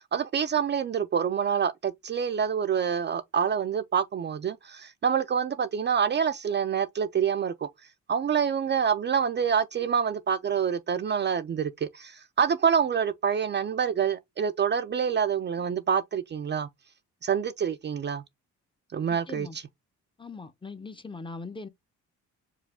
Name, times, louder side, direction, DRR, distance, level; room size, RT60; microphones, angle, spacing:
voice 1, 0.0-7.7 8.1-16.7 17.2-18.2 18.9-19.5, right 7 dB, 35° right, 0.4 m, -27 dB
voice 2, 19.3-19.6 20.2-21.7, left 3 dB, 15° left, 0.6 m, -40 dB
4.8 x 2.2 x 3.4 m
cardioid pair, 90°, 30 cm